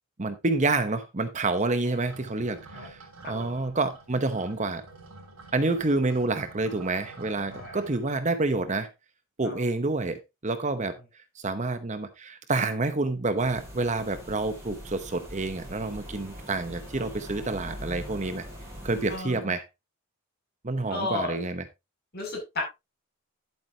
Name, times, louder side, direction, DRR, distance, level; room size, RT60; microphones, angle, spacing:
voice 1, 0.2-4.8 5.5-8.9 9.4-11.0 11.4-18.5 18.8-19.6 20.6-21.6, right 3 dB, 35° right, 0.9 m, -28 dB
sound 1, 2.0-8.2, right 3 dB, 80° right, 3.7 m, -48 dB
voice 2, 3.2-3.6 7.5-7.8 9.4-9.7 19.1-19.5 20.9-21.4 22.1-22.6, left 2 dB, 45° left, 7.4 m, -34 dB
sound 2, 13.4-19.2, equal, 10° right, 5.3 m, -42 dB
11.0 x 9.0 x 2.8 m
head